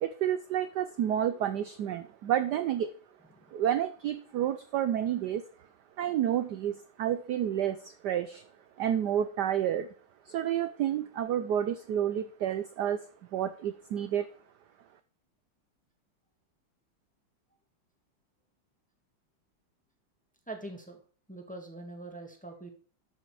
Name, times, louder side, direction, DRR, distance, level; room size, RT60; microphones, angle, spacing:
voice 1, 0.0-2.9 3.5-5.4 6.0-8.4 8.8-9.9 10.3-13.0 13.3-14.3, right 10 dB, 70° right, 10 dB, 1.0 m, -30 dB
voice 2, 20.5-21.0 21.3-22.7, right 2 dB, 5° left, 3 dB, 1.4 m, -43 dB
12.5 x 6.5 x 4.8 m, 0.42 s
omnidirectional pair, 2.4 m